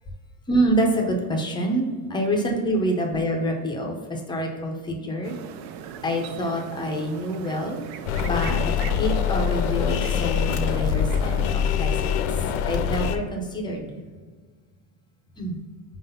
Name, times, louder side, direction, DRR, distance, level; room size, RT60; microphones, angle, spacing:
voice 1, 0.5-5.4 6.0-7.8 8.2-8.6 9.0-14.0 15.4-15.6, equal, 10° left, 1 dB, 0.5 m, -26 dB
sound 1, 5.2-11.5, right 9 dB, 60° right, 0.6 m, -39 dB
sound 2, 8.1-13.2, left 8 dB, 70° left, 0.7 m, -24 dB
4.9 x 4.0 x 5.3 m, 1.5 s
cardioid pair, 165°, 49 cm